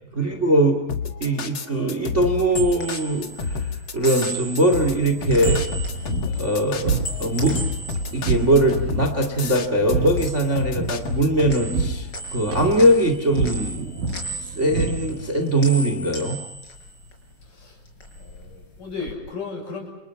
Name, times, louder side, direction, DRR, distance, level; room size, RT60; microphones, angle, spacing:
voice 1, 0.1-0.8 1.2-5.6 6.3-6.9 7.2-7.6 8.1-13.9 14.5-16.4, right 1 dB, 25° right, 6 dB, 2.2 m, -21 dB
sound 1, 0.9-11.6, left 5 dB, 45° left, 1.9 m, -29 dB
sound 2, 2.2-9.5 9.8-11.2 11.5-17.5 17.8-19.1, right 2 dB, 30° left, 6.0 m, -37 dB
sound 3, 4.8-15.4, right 4 dB, 90° right, 8.3 m, -29 dB
voice 2, 18.2-19.9, left 4 dB, 60° left, 2 dB, 8.2 m, -35 dB
29.0 x 28.0 x 5.9 m, 0.95 s
omnidirectional pair, 4.1 m